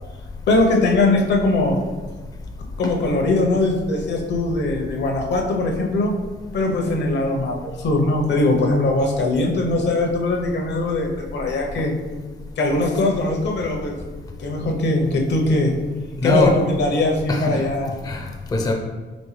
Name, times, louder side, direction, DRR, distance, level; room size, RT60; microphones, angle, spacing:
voice 1, 0.5-1.8 2.8-6.1 6.5-11.9 12.6-13.9 14.4-15.7 16.2-17.9, left 2 dB, 65° left, 1 dB, 0.8 m, -21 dB
voice 2, 16.2-16.6 17.3-17.7 18.0-18.7, left 2 dB, 20° left, 2 dB, 0.5 m, -22 dB
5.2 x 3.0 x 3.2 m, 1.3 s
cardioid pair, 120°, 19 cm